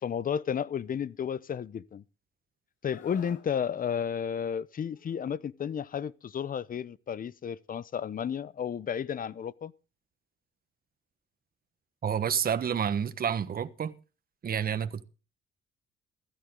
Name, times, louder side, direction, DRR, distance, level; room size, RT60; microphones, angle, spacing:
voice 1, 0.0-2.0 2.8-9.7, left 8 dB, 45° left, 0.8 m, -32 dB
Screaming, 2.9-3.5 4.9-5.2, left 7 dB, 75° left, 2.8 m, -49 dB
voice 2, 12.0-13.9 14.4-15.0, right 8 dB, 50° right, 1.3 m, -29 dB
15.5 x 14.0 x 3.8 m
cardioid pair, 90°, 20 cm